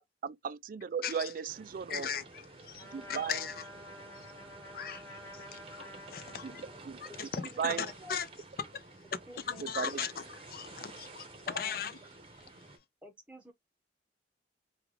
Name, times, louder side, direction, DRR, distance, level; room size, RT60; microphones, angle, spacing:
voice 1, 0.2-2.1 2.8-3.5 6.4-6.5 6.9-7.0 7.6-7.9 9.6-10.0, right 7 dB, 50° right, 0.3 m, -36 dB
sound 1, 1.5-12.8, right 3 dB, 30° right, 0.7 m, -52 dB
voice 2, 1.9-3.5 3.8-4.3 4.7-6.6 7.0-8.3 9.5-11.9 12.4-12.5, left 7 dB, 55° left, 0.5 m, -39 dB
Trumpet, 2.8-7.3, equal, 15° left, 2.1 m, -50 dB
voice 3, 7.3-8.2 9.3-9.7 11.5-11.8 13.0-13.5, equal, 5° right, 0.9 m, -51 dB
3.6 x 2.3 x 3.1 m
head